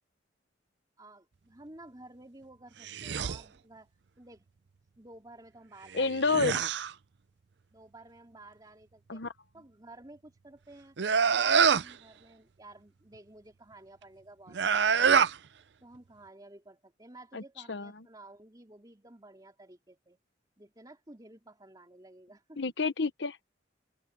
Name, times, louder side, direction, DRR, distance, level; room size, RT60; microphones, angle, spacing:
voice 1, 1.0-4.5 5.0-6.2 7.7-9.2 9.5-11.0 11.3-15.3 15.8-20.2 20.6-22.6, right 2 dB, 20° right, 3.4 m, -53 dB
sound 1, 2.8-3.4 5.9-6.9 11.0-11.9 14.5-15.4, right 6 dB, 65° right, 0.5 m, -25 dB
voice 2, 5.9-6.6 9.1-9.3 17.3-17.4 17.7-17.9 22.6-23.4, left 3 dB, 65° left, 1.0 m, -29 dB
head